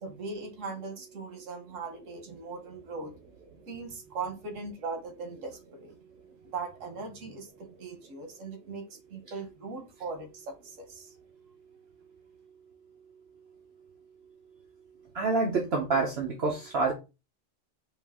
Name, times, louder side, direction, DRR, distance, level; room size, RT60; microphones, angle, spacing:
voice 1, 0.0-3.2 3.7-5.9 6.4-11.2, right 4 dB, 85° right, 7 dB, 1.4 m, -39 dB
voice 2, 15.1-16.9, right 3 dB, 60° right, 0 dB, 0.9 m, -27 dB
4.7 x 2.5 x 3.5 m, 0.28 s
omnidirectional pair, 1.3 m